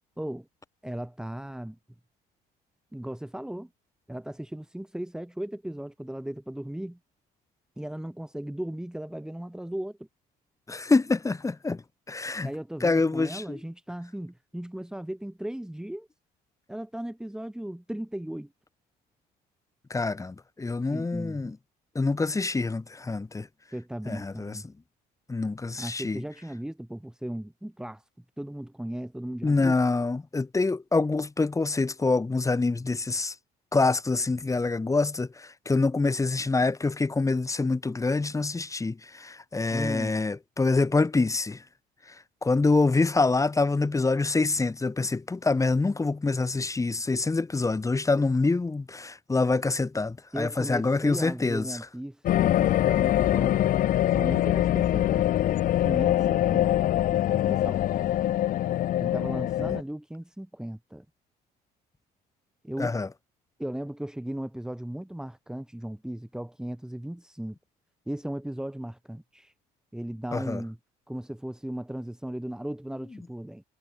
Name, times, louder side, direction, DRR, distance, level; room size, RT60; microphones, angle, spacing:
voice 1, 0.2-0.5 0.8-1.8 2.9-3.7 4.1-7.0 7.8-10.1 12.4-16.1 16.7-18.5 20.9-21.5 23.7-24.7 25.8-28.0 28.4-29.8 39.7-40.2 48.2-48.3 50.3-53.7 54.1-55.3 55.8-56.7 57.3-57.8 59.0-61.0 62.6-62.9 63.6-67.6 68.1-69.5 69.9-70.8 71.1-73.6, right 1 dB, 5° right, 3.2 m, -36 dB
voice 2, 10.7-12.5 12.8-13.6 19.9-21.6 22.0-23.5 24.1-24.6 25.3-26.2 29.4-33.4 33.7-41.6 42.1-51.8 59.6-59.7 62.8-63.1 70.3-70.6, left 3 dB, 20° left, 5.3 m, -26 dB
sound 1, 52.3-59.8, left 13 dB, 55° left, 0.5 m, -24 dB
cardioid pair, 110°, 17 cm